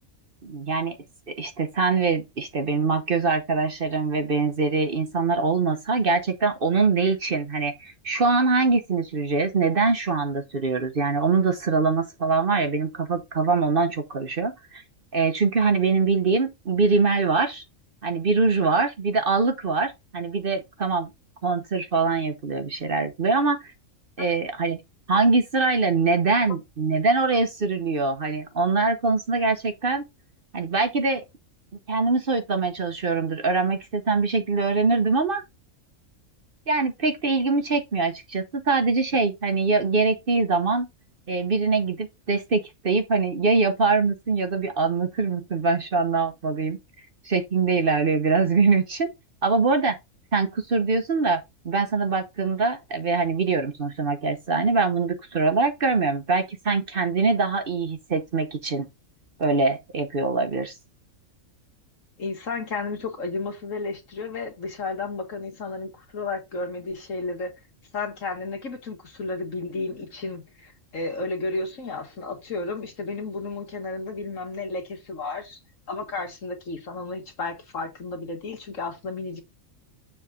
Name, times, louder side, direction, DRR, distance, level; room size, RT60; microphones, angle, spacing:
voice 1, 0.4-1.0 1.4-14.8 15.1-17.6 18.0-21.1 21.4-23.6 24.2-24.8 25.1-30.0 30.5-31.2 31.9-35.4 36.7-40.9 41.3-46.8 47.2-49.1 49.4-50.0 50.3-58.9 59.4-60.7, right 4 dB, 45° right, 1.1 m, -23 dB
voice 2, 62.2-67.5 67.9-75.6 75.9-79.4, left 3 dB, 70° left, 2.1 m, -32 dB
7.1 x 3.6 x 4.8 m
omnidirectional pair, 1.4 m